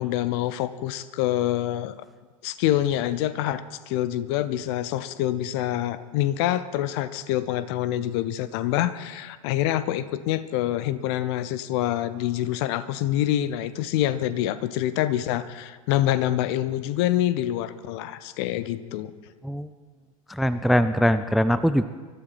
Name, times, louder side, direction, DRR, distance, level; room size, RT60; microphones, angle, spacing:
voice 1, 0.0-2.0 2.4-19.1, left 13 dB, 45° left, 15 dB, 0.9 m, -26 dB
voice 2, 20.3-21.9, equal, ahead, 13 dB, 0.4 m, -22 dB
24.0 x 12.5 x 4.3 m, 1.4 s
figure-of-eight pair, 90°, 18 cm